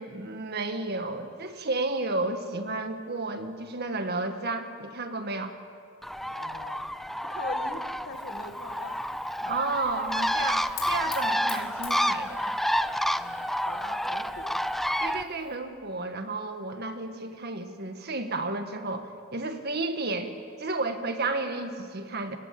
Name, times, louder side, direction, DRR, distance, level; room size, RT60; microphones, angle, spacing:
voice 1, 0.0-5.5 9.5-12.6 15.0-20.3 20.6-22.4, right 3 dB, 50° right, 7 dB, 1.7 m, -32 dB
Bird, 6.0-15.2, equal, ahead, 0.5 m, -29 dB
voice 2, 6.3-6.9 7.2-9.0 9.4-9.6 13.1-14.6, left 2 dB, 50° left, 6 dB, 1.9 m, -42 dB
Fire, 8.1-15.6, left 9 dB, 85° left, 4.8 m, -48 dB
28.0 x 18.5 x 7.7 m, 2.2 s
head